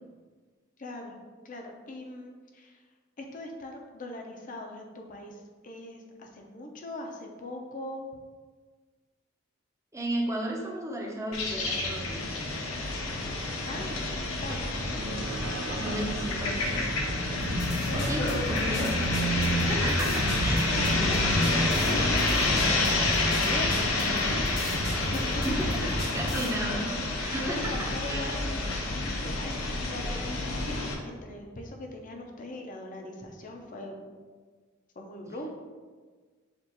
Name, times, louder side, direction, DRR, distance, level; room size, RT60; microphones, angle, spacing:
voice 1, 0.8-1.2 1.4-2.8 3.2-8.0 13.7-14.8 17.8-18.9 19.7-20.2 20.7-24.7 25.1-25.6 27.4-34.1 35.0-35.5, left 1 dB, 40° left, 2 dB, 0.6 m, -40 dB
voice 2, 9.9-12.3 15.0-16.9 17.3-19.0 19.7-20.8 25.4-28.4, right 1 dB, 15° right, -2 dB, 0.7 m, -34 dB
sound 1, 11.3-30.9, left 2 dB, 85° left, 0.7 m, -28 dB
sound 2, 14.5-23.3, right 4 dB, 55° right, 0.3 m, -45 dB
sound 3, 17.4-26.5, equal, 60° left, 1.1 m, -34 dB
6.6 x 2.4 x 2.9 m, 1.5 s
head